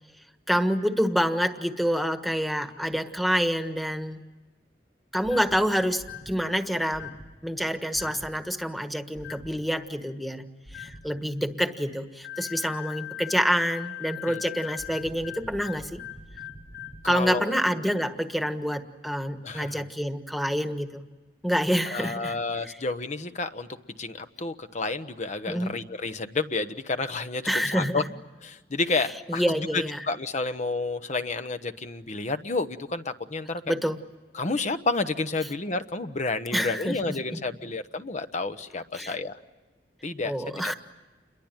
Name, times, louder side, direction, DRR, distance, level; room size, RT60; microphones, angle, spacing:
voice 1, 0.5-4.2 5.1-7.1 7.4-10.5 10.7-16.0 17.0-21.0 21.4-22.3 22.6-22.7 25.5-25.8 27.4-28.1 29.3-30.0 33.7-34.0 36.5-37.0 37.3-37.4 38.9-39.1 40.2-40.7, equal, ahead, 8 dB, 1.4 m, -27 dB
sound 1, 5.2-5.6 6.0-6.4 6.9-7.3 7.9-8.3 9.2-9.5 10.7-11.0 12.2-17.0, left 9 dB, 75° left, 3.9 m, -40 dB
voice 2, 17.0-17.6 19.4-19.9 21.9-28.0 28.4-33.7 34.3-39.4 40.0-40.7, left 3 dB, 45° left, 9 dB, 1.0 m, -30 dB
29.0 x 22.5 x 9.0 m, 1.2 s
head